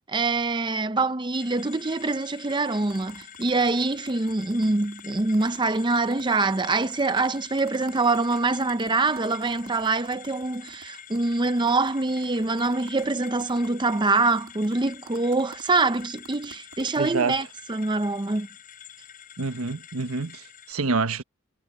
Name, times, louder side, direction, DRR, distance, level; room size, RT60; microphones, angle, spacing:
voice 1, 0.1-18.5, right 3 dB, 20° right, 0.6 m, -25 dB
sound 1, 1.3-20.7, left 9 dB, 40° left, 3.9 m, -47 dB
sound 2, 2.9-10.9 11.2-11.3 11.4-17.1, right 4 dB, 65° right, 3.2 m, -48 dB
voice 2, 17.0-17.5 19.4-21.2, right 4 dB, 90° right, 1.2 m, -27 dB
head